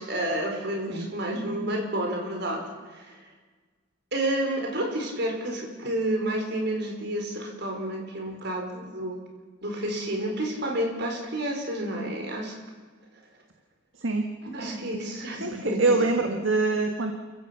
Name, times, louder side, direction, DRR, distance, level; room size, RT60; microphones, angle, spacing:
voice 1, 0.0-2.6 2.9-3.2 4.1-9.2 9.6-12.6 14.4-16.0, right 1 dB, 60° right, 2 dB, 4.9 m, -30 dB
voice 2, 15.4-17.1, right 3 dB, 75° right, 4 dB, 1.7 m, -25 dB
29.0 x 16.0 x 6.0 m, 1.4 s
head